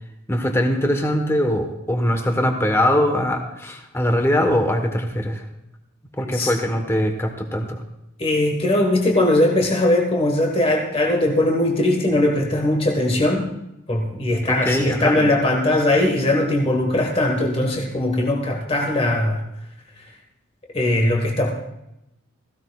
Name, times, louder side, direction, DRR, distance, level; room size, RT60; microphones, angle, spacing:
voice 1, 0.3-5.4 6.2-7.8 14.5-15.3, left 1 dB, 15° left, 4 dB, 1.2 m, -21 dB
voice 2, 8.2-13.5 13.9-19.4 20.0-20.1 20.7-21.5, left 1 dB, 30° left, 1 dB, 1.4 m, -20 dB
17.0 x 15.5 x 2.4 m, 0.87 s
head